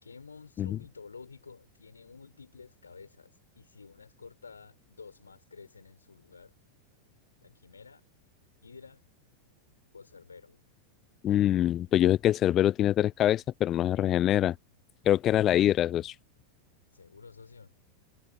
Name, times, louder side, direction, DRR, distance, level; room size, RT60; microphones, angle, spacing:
voice 1, 0.0-6.5 7.4-8.1 8.6-9.0 9.9-10.6 16.9-17.7, left 5 dB, 75° left, 4.3 m, -51 dB
voice 2, 11.2-14.6 15.1-16.2, left 12 dB, 30° left, 0.4 m, -24 dB
figure-of-eight pair, 90°, 0 cm